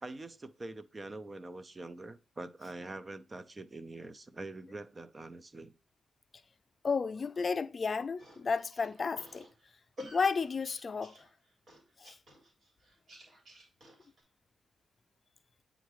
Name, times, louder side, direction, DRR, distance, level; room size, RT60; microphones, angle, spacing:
voice 1, 0.0-5.7, right 2 dB, 35° right, 0.7 m, -44 dB
voice 2, 6.8-9.4 10.1-11.1 12.0-12.1, left 5 dB, 45° left, 0.4 m, -32 dB
sound 1, 8.2-14.2, left 1 dB, 55° right, 3.6 m, -52 dB
9.1 x 3.8 x 3.1 m
cardioid pair, 65°, 0 cm